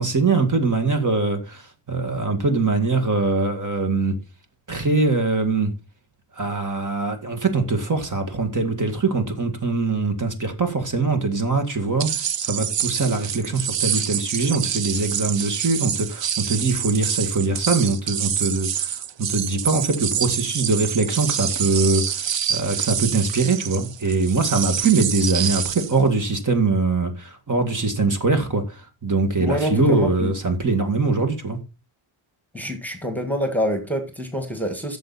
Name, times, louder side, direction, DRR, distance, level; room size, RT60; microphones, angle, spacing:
voice 1, 0.0-4.2 4.7-5.7 6.3-31.6, right 3 dB, 35° right, 2.0 m, -22 dB
sound 1, 12.0-26.0, right 9 dB, 60° right, 0.8 m, -27 dB
voice 2, 29.4-30.3 32.5-35.0, equal, 5° left, 1.6 m, -26 dB
13.0 x 7.2 x 4.1 m
wide cardioid pair, 170°, 50 cm